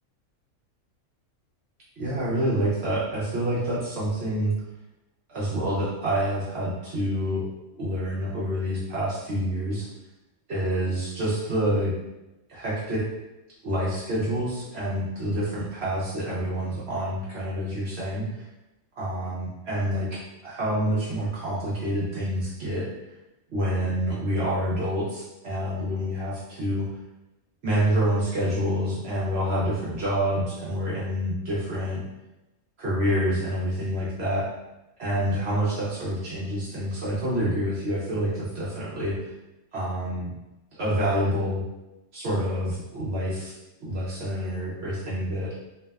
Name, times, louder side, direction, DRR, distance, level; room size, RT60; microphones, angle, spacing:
voice 1, 2.0-4.5 5.3-7.4 7.8-9.8 10.5-11.9 12.5-13.0 13.6-18.3 19.0-22.9 23.5-26.9 27.6-32.0 32.8-34.5 35.0-39.1 39.7-40.3 40.8-41.6 42.1-43.5 43.8-45.5, equal, 60° right, -7 dB, 0.7 m, -27 dB
2.6 x 2.1 x 2.2 m, 0.98 s
omnidirectional pair, 1.5 m